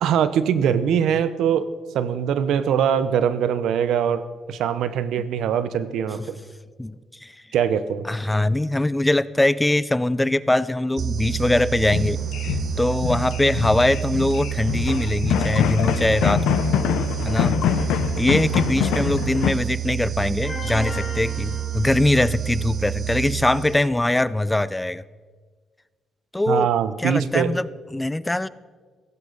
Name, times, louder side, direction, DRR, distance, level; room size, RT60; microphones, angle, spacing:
voice 1, 0.0-1.7 1.9-6.4 7.5-8.0 26.5-27.6, right 8 dB, 80° right, 13 dB, 0.8 m, -22 dB
voice 2, 8.1-12.2 12.4-16.6 17.2-17.9 18.2-25.0 26.3-26.7 27.0-28.5, left 1 dB, 10° left, 18 dB, 0.4 m, -22 dB
sound 1, 11.0-24.1, right 11 dB, 55° right, 0.4 m, -29 dB
sound 2, 11.8-19.5, left 9 dB, 85° left, 0.7 m, -24 dB
sound 3, 20.4-22.5, left 2 dB, 25° left, 2.1 m, -36 dB
16.5 x 15.0 x 4.0 m, 1.5 s
cardioid pair, 90°, 0 cm